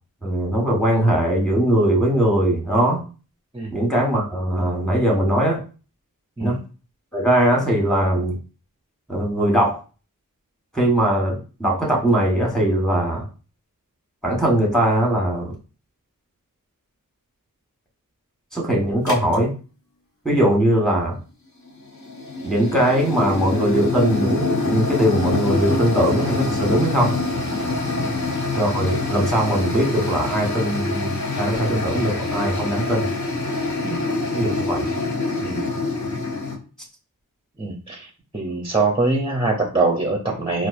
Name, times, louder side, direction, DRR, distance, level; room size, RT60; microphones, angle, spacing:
voice 1, 0.2-3.0 3.7-5.6 6.4-6.6 7.1-8.4 9.1-9.8 10.7-13.2 14.2-15.5 18.5-19.5 20.2-21.2 22.4-27.1 28.5-33.1 34.3-34.9, right 1 dB, ahead, -2 dB, 1.4 m, -20 dB
sound 1, 19.1-19.3 21.7-36.6, left 3 dB, 55° left, 1.3 m, -25 dB
voice 2, 35.4-35.7 37.6-38.1 38.3-40.7, right 3 dB, 15° right, 2 dB, 0.6 m, -23 dB
4.1 x 2.4 x 2.5 m, 0.35 s
wide cardioid pair, 55°, 35 cm